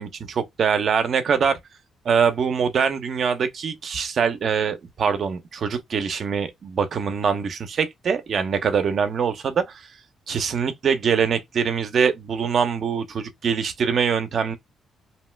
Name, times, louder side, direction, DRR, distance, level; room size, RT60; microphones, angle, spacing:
voice 1, 0.0-1.6 2.0-9.9 10.3-14.6, right 6 dB, 60° right, 0.7 m, -23 dB
2.8 x 2.1 x 3.2 m
cardioid pair, 75°, 0 cm